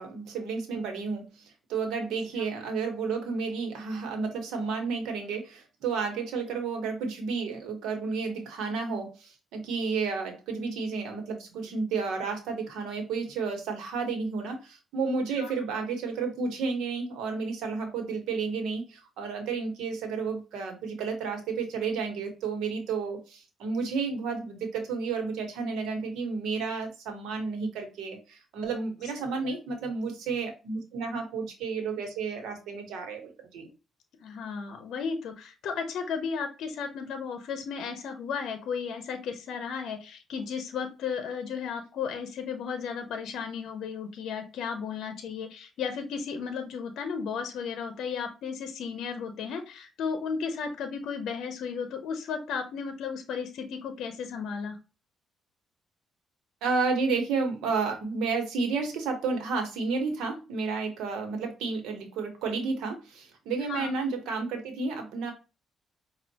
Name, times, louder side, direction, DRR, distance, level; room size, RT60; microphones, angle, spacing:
voice 1, 0.0-33.7 56.6-65.3, right 4 dB, 85° right, 4 dB, 1.1 m, -31 dB
voice 2, 34.2-54.8 63.7-63.9, left 6 dB, 75° left, 7 dB, 0.6 m, -34 dB
5.4 x 2.4 x 2.8 m, 0.30 s
cardioid pair, 90°, 0 cm